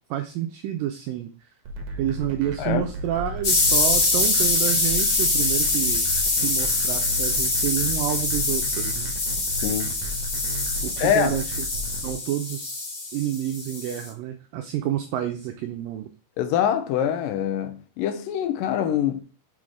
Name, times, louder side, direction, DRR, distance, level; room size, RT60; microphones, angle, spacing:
voice 1, 0.1-1.3 2.0-9.1 10.8-11.7 12.0-16.1, right 11 dB, 85° right, 2.0 m, -29 dB
sound 1, 1.7-12.1, right 1 dB, 65° right, 2.0 m, -34 dB
sound 2, 3.4-14.1, left 3 dB, 40° left, 1.8 m, -24 dB
voice 2, 9.6-10.0 11.0-11.3 16.4-19.2, left 9 dB, 75° left, 2.1 m, -24 dB
6.4 x 4.2 x 4.7 m
omnidirectional pair, 4.5 m